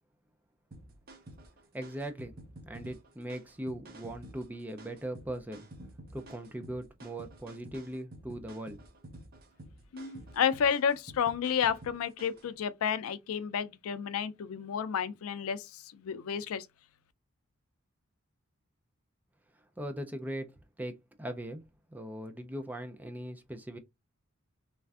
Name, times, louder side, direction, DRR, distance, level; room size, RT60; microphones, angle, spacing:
sound 1, 0.7-12.5, right 1 dB, 45° right, 0.6 m, -50 dB
voice 1, 1.7-2.4 2.7-5.7 6.1-8.8 19.8-20.9 21.2-21.6 21.9-23.8, right 1 dB, 10° right, 0.3 m, -39 dB
voice 2, 9.9-15.6 16.0-16.6, left 7 dB, 85° left, 0.4 m, -31 dB
3.2 x 2.5 x 2.3 m
head